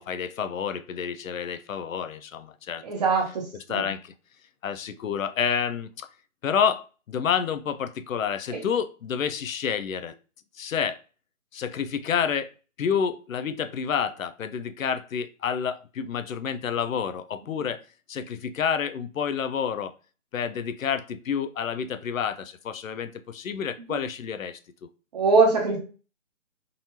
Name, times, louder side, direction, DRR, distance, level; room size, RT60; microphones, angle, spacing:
voice 1, 0.0-2.8 3.7-4.1 4.6-6.1 6.4-10.2 10.6-11.0 11.5-12.5 12.8-17.8 18.1-19.9 20.3-24.6, left 7 dB, 80° left, 0.6 m, -29 dB
voice 2, 2.8-3.9 8.5-8.6 25.1-25.8, right 4 dB, 30° right, 0.9 m, -22 dB
3.8 x 3.1 x 2.7 m
hypercardioid pair, 155°, 40 cm